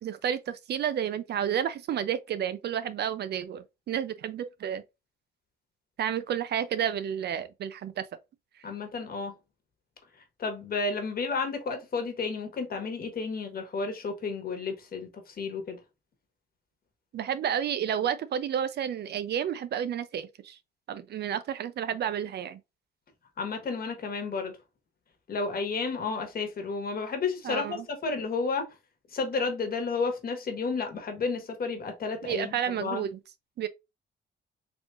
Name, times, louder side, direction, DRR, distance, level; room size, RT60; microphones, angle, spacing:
voice 1, 0.0-4.8 6.0-8.0 17.1-20.6 20.9-22.6 27.4-27.9 32.2-33.2 33.6-33.7, right 9 dB, 60° right, 0.5 m, -31 dB
voice 2, 8.6-9.3 10.4-15.8 23.4-24.5 25.3-28.7 29.1-33.0, left 4 dB, 50° left, 1.3 m, -32 dB
4.1 x 3.0 x 2.4 m
cardioid pair, 90°, 20 cm